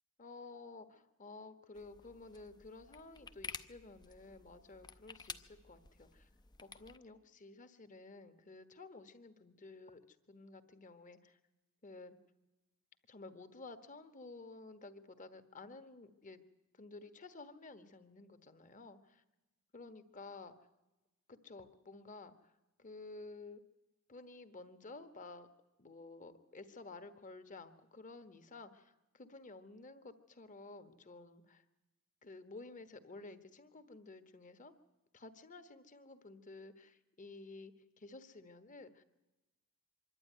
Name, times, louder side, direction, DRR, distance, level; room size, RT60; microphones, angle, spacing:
voice 1, 0.2-6.3 6.6-11.4 11.8-12.2 13.1-16.4 16.7-19.2 19.7-20.5 21.3-22.5 22.8-23.6 24.1-25.5 25.8-31.6 32.2-34.7 35.1-39.0, left 3 dB, 35° left, 9 dB, 1.3 m, -53 dB
sound 1, 1.8-7.0, left 5 dB, 20° left, 0.6 m, -52 dB
25.0 x 12.0 x 9.4 m, 1.0 s
head